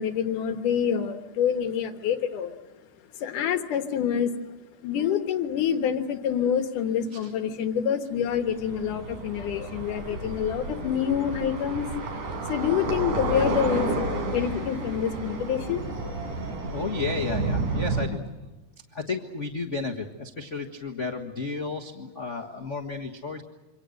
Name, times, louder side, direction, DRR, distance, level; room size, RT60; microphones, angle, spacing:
voice 1, 0.0-2.6 3.2-4.3 4.8-11.9 12.3-15.8, left 8 dB, 80° left, 7 dB, 2.8 m, -27 dB
sound 1, 8.2-18.1, right 2 dB, 70° right, 5.1 m, -31 dB
voice 2, 16.7-18.2 18.9-23.4, left 4 dB, 40° left, 1 dB, 1.1 m, -32 dB
27.5 x 26.0 x 6.5 m, 1.1 s
omnidirectional pair, 3.7 m